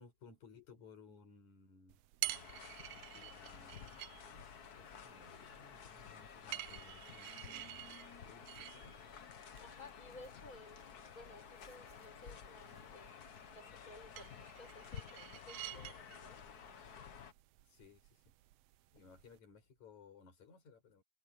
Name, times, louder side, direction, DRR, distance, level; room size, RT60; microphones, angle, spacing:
voice 1, 0.0-2.5 2.9-4.1 4.8-8.0 8.2-9.0 17.6-18.3 18.9-21.0, left 5 dB, 75° left, 7.2 m, -61 dB
sound 1, 1.9-19.4, right 16 dB, 75° right, 1.6 m, -50 dB
sound 2, 2.2-17.3, left 7 dB, 50° left, 1.2 m, -53 dB
voice 2, 9.6-13.1 13.5-16.4, left 2 dB, 25° left, 6.6 m, -57 dB
omnidirectional pair, 3.3 m